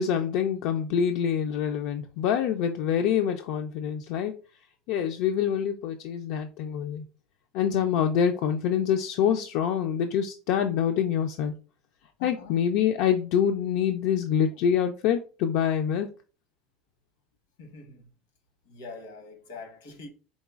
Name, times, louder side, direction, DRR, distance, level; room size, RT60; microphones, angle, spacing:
voice 1, 0.0-4.4 4.9-7.1 7.5-11.5 12.2-16.1, left 8 dB, 70° left, 0.4 m, -26 dB
voice 2, 12.2-12.6 17.6-18.1 18.6-20.1, left 3 dB, 85° left, 1.0 m, -44 dB
4.0 x 3.7 x 2.4 m
supercardioid pair, 100°, 0 cm